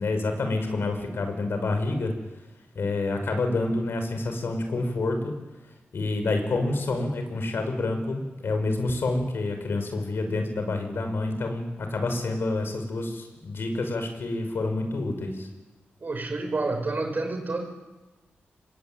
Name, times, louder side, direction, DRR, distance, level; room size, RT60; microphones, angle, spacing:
voice 1, 0.0-2.1 2.7-5.3 5.9-15.5, left 2 dB, 70° left, 5 dB, 6.3 m, -28 dB
voice 2, 16.0-17.6, right 3 dB, 50° right, 4 dB, 7.3 m, -29 dB
26.0 x 21.5 x 9.6 m, 1.2 s
cardioid pair, 60°, 4 cm